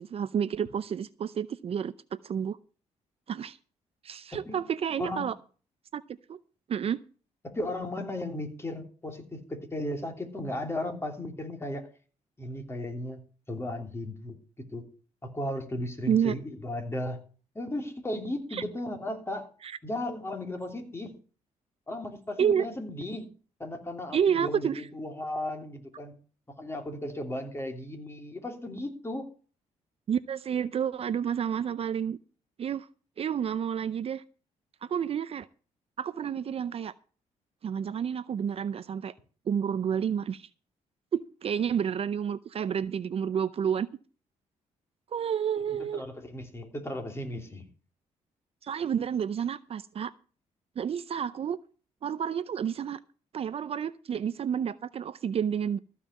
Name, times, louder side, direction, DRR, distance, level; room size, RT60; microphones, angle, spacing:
voice 1, 0.0-2.6 3.3-3.6 4.0-5.3 5.9-6.0 6.3-6.4 6.7-7.0 16.1-16.3 18.5-18.6 19.6-19.8 22.4-22.6 24.1-24.9 30.1-32.2 32.6-32.9 33.2-34.2 34.8-35.5 36.0-36.9 37.6-39.1 39.5-40.5 41.1-43.9 45.1-46.0 48.6-50.1 50.8-51.6 52.0-53.0 53.3-55.8, right 8 dB, 50° right, 15 dB, 0.6 m, -30 dB
voice 2, 5.0-5.3 7.4-11.9 12.4-13.2 13.5-14.4 14.7-14.8 15.2-17.2 17.5-19.5 19.8-21.2 21.9-23.3 23.6-26.1 26.6-29.3 45.7-47.7, left 1 dB, 20° left, 4 dB, 3.1 m, -35 dB
14.5 x 5.6 x 8.2 m, 0.38 s
cardioid pair, 100°, 13 cm